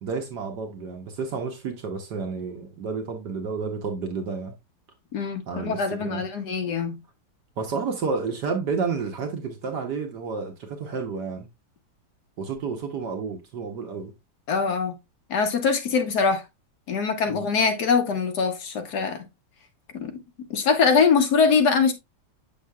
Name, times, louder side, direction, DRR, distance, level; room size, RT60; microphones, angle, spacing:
voice 1, 0.0-4.6 5.5-6.2 7.6-11.5 12.4-14.1 17.3-17.5, right 5 dB, 65° right, 1.5 m, -31 dB
voice 2, 5.1-7.0 14.5-14.9 15.3-16.4 16.9-19.2 19.9-20.1 20.5-21.9, left 5 dB, 60° left, 1.4 m, -23 dB
7.0 x 6.4 x 2.3 m
omnidirectional pair, 2.1 m